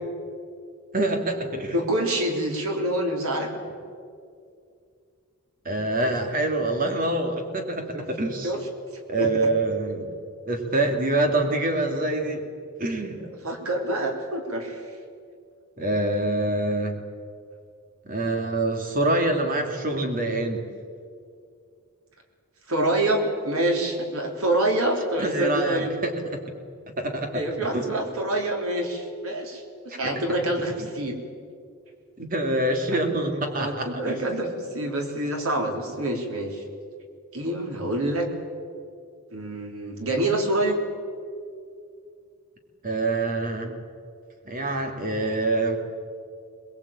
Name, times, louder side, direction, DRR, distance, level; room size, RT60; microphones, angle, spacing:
voice 1, 0.9-1.8 5.6-8.5 9.1-10.1 10.5-12.4 12.8-13.2 15.8-17.0 18.0-20.6 25.2-26.5 27.0-27.4 27.7-27.9 30.0-30.2 30.8-30.9 32.2-34.4 42.8-43.8 44.5-45.8, right 2 dB, 40° right, 4 dB, 2.8 m, -26 dB
voice 2, 1.7-3.5 7.9-8.1 8.4-8.6 9.2-9.5 13.4-14.8 22.7-25.9 27.3-31.2 32.9-33.0 33.6-36.6 37.3-38.3 39.3-40.8, right 1 dB, 80° right, 2 dB, 3.7 m, -26 dB
22.5 x 20.5 x 8.7 m, 2.3 s
head